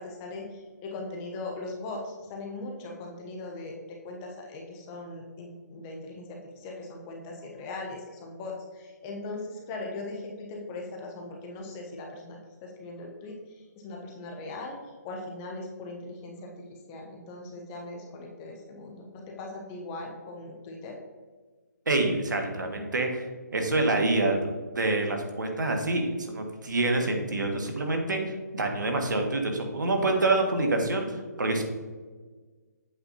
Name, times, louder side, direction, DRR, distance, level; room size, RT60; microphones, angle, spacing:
voice 1, 0.0-21.0, left 2 dB, 10° left, 0 dB, 0.3 m, -40 dB
voice 2, 21.9-28.2 28.5-31.1 31.4-31.6, right 2 dB, 90° right, 3 dB, 1.4 m, -26 dB
7.9 x 5.6 x 2.7 m, 1.4 s
hypercardioid pair, 170°, 10 cm